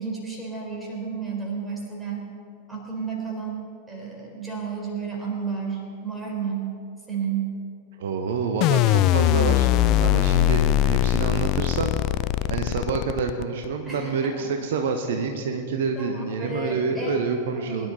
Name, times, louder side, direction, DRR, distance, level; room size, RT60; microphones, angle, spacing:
voice 1, 0.0-2.2 2.7-6.7 7.1-7.5 13.9-14.5 16.0-17.2 17.5-17.9, right 5 dB, 10° right, -2 dB, 4.0 m, -32 dB
voice 2, 8.0-9.7 10.0-11.9 12.5-17.9, right 5 dB, 55° right, 5 dB, 1.0 m, -27 dB
sound 1, 8.6-13.7, left 13 dB, 40° left, 0.4 m, -21 dB
22.5 x 11.0 x 4.0 m, 2.5 s
figure-of-eight pair, 90°, 0 cm